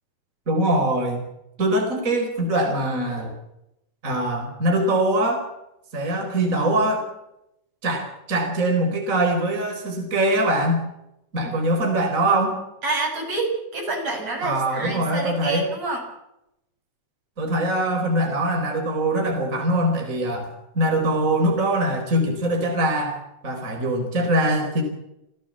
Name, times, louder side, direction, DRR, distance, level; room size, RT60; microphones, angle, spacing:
voice 1, 0.5-1.2 1.6-3.3 4.0-5.5 5.9-7.1 7.8-10.8 11.3-12.6 14.4-15.7 17.4-24.8, right 1 dB, 25° right, 3 dB, 4.6 m, -23 dB
voice 2, 12.8-16.0, right 3 dB, 60° right, 2 dB, 7.4 m, -27 dB
29.5 x 15.5 x 7.5 m, 0.84 s
omnidirectional pair, 3.4 m